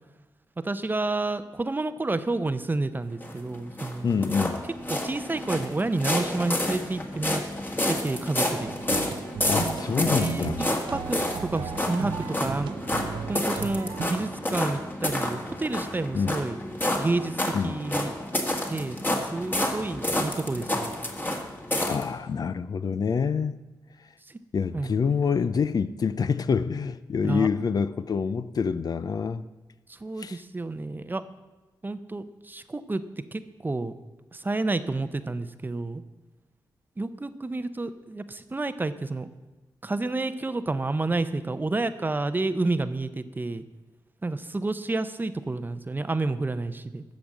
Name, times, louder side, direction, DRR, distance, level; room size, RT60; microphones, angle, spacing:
voice 1, 0.6-4.2 4.9-7.4 7.9-8.7 10.1-10.7 10.9-12.7 13.3-16.6 17.0-18.1 18.7-21.0 24.3-24.4 24.7-24.9 27.2-27.5 29.9-31.2 31.8-33.0 33.3-33.9 34.3-36.0 37.0-39.3 39.8-43.6 44.2-47.0, right 2 dB, 25° right, 0.6 m, -30 dB
sound 1, 3.2-22.0, left 1 dB, 25° left, 1.7 m, -29 dB
voice 2, 4.0-4.6 9.5-10.6 16.1-16.3 17.5-17.8 21.8-23.6 24.5-29.4 30.2-30.4, left 6 dB, 50° left, 0.5 m, -26 dB
sound 2, 8.6-14.1, right 7 dB, 75° right, 0.6 m, -35 dB
13.0 x 5.2 x 7.5 m
cardioid pair, 80°, 8 cm